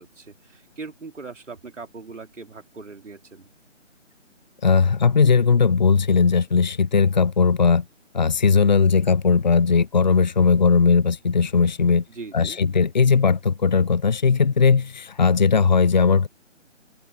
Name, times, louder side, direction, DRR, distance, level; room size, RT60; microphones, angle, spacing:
voice 1, 0.0-3.5 12.1-12.6, right 4 dB, 70° right, 3.6 m, -40 dB
voice 2, 4.6-7.8 8.1-12.0 12.3-16.3, left 5 dB, 35° left, 0.8 m, -18 dB
figure-of-eight pair, 160°, 38 cm